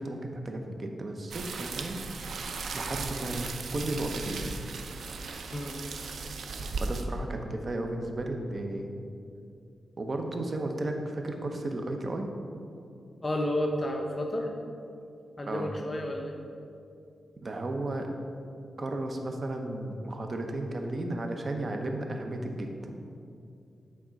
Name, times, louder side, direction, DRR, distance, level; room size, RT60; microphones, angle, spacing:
voice 1, 0.0-2.4 2.7-4.4 6.8-8.9 10.0-12.3 15.5-15.7 17.4-18.1 18.8-22.9, right 2 dB, 40° right, 4 dB, 0.8 m, -34 dB
sound 1, 1.3-7.0, right 4 dB, 75° right, 0.5 m, -37 dB
voice 2, 5.5-5.8 6.6-6.7 13.2-14.5 15.4-16.3, left 1 dB, 25° left, 2 dB, 0.6 m, -31 dB
8.8 x 3.6 x 5.1 m, 2.5 s
cardioid pair, 90°, 0 cm